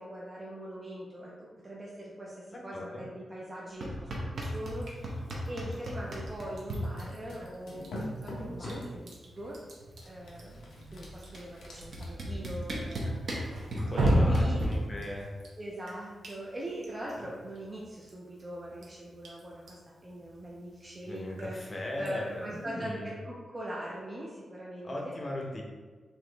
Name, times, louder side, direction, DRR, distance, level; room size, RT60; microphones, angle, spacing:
voice 1, 0.0-9.0 9.3-9.6 10.1-10.6 10.9-13.5 13.9-14.7 15.6-25.2, right 1 dB, 20° right, -5 dB, 0.5 m, -41 dB
voice 2, 2.7-3.0 8.6-8.8 13.7-15.4 21.0-23.1 24.8-25.6, left 1 dB, 30° left, -2 dB, 0.7 m, -38 dB
sound 1, 3.8-4.8 5.0-6.8 8.1-8.2 8.4-8.8 9.1-10.5 11.3-11.4 11.9-14.6, right 1 dB, 55° right, 0.8 m, -36 dB
Drip, 4.4-22.6, equal, 90° right, 0.8 m, -37 dB
sound 2, 6.7-8.9 10.0-12.1, equal, 85° left, 0.8 m, -43 dB
4.0 x 2.9 x 3.3 m, 1.4 s
wide cardioid pair, 165°, 0 cm